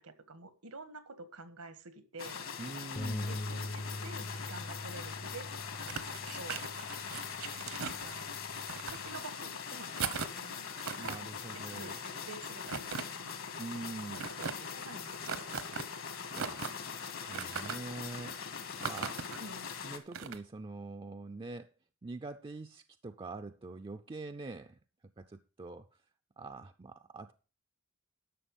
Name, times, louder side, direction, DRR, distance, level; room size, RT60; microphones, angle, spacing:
voice 1, 0.0-2.5 3.3-6.6 7.5-8.3 8.8-10.7 11.0-11.1 11.5-13.5 14.1-15.7 19.4-19.7, right 3 dB, 85° right, 1.5 m, -49 dB
sound 1, 2.2-20.0, left 6 dB, 65° left, 1.7 m, -42 dB
voice 2, 2.6-3.4 11.0-12.0 13.6-14.3 16.3-18.4 18.7-19.2 19.8-21.7 22.0-24.8 25.2-25.9 26.4-27.3, right 3 dB, 25° right, 0.4 m, -44 dB
Bass guitar, 3.0-9.2, left 1 dB, 25° left, 0.6 m, -43 dB
sound 2, 5.9-8.1 8.5-9.3 9.9-10.4 10.8-11.2 12.6-13.0 14.2-14.5 15.3-15.9 16.3-16.8 17.3-17.7 18.8-19.4 20.1-20.4, right 6 dB, 70° right, 1.0 m, -38 dB
11.5 x 6.8 x 5.3 m
head